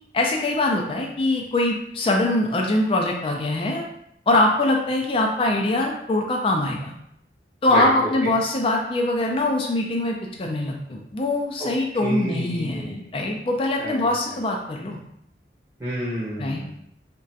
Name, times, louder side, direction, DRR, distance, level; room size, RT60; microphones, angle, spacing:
voice 1, 0.1-3.8 4.3-6.9 7.6-15.0 16.4-16.6, left 2 dB, 30° left, 1 dB, 0.3 m, -23 dB
voice 2, 7.7-8.3 11.6-11.7 12.0-13.1 13.8-14.1 15.8-16.7, right 1 dB, 15° right, -9 dB, 0.7 m, -29 dB
2.4 x 2.2 x 3.9 m, 0.73 s
head